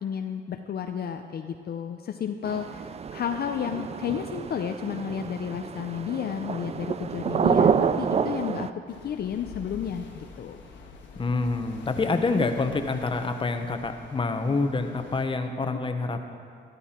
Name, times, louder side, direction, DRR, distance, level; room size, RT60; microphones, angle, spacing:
voice 1, 0.0-10.6, left 8 dB, 55° left, 6 dB, 0.6 m, -32 dB
sound 1, 2.4-8.7, right 6 dB, 30° right, 0.4 m, -28 dB
sound 2, 8.9-15.2, left 4 dB, 70° left, 1.5 m, -46 dB
voice 2, 11.2-16.2, left 3 dB, 25° left, 6 dB, 1.0 m, -27 dB
13.0 x 11.0 x 4.4 m, 2.3 s
cardioid pair, 90°, 20 cm